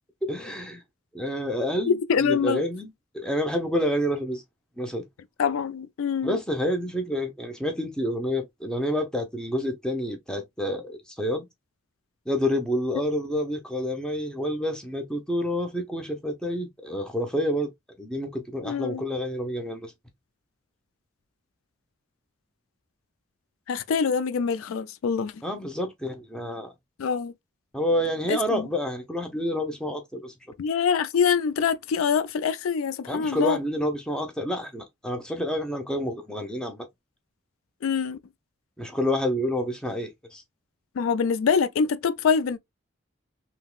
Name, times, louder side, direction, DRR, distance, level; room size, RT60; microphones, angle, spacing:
voice 1, 0.2-0.8 1.1-4.4 4.8-5.0 6.2-11.5 12.3-17.7 18.0-19.9 25.4-26.7 27.7-30.3 33.1-36.9 38.8-40.4, equal, 5° left, 0.6 m, -28 dB
voice 2, 1.8-2.6 5.4-6.4 18.7-19.0 23.7-25.3 27.0-27.3 28.3-28.7 30.6-33.6 37.8-38.2 41.0-42.6, left 6 dB, 85° left, 0.4 m, -25 dB
3.5 x 2.9 x 2.3 m
head